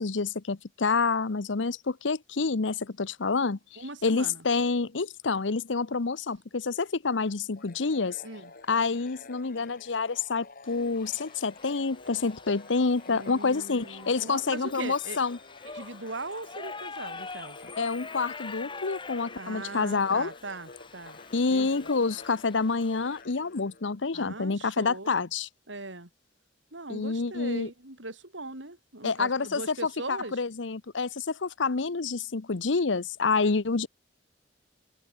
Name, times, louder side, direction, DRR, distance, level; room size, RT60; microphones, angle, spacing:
voice 1, 0.0-8.2 8.7-15.4 17.8-20.3 21.3-25.5 26.9-27.7 29.0-29.7 30.1-33.9, left 4 dB, 80° left, 0.9 m, -28 dB
voice 2, 3.8-4.4 8.2-8.5 13.1-15.2 15.7-17.7 19.3-21.2 21.5-21.9 24.1-25.2 25.7-26.1 26.7-30.4, right 2 dB, 85° right, 5.8 m, -40 dB
sound 1, 7.6-24.3, left 3 dB, 50° left, 4.1 m, -50 dB
Shout / Livestock farm animals working animals, 10.7-23.2, left 4 dB, 25° left, 3.3 m, -45 dB
open air
head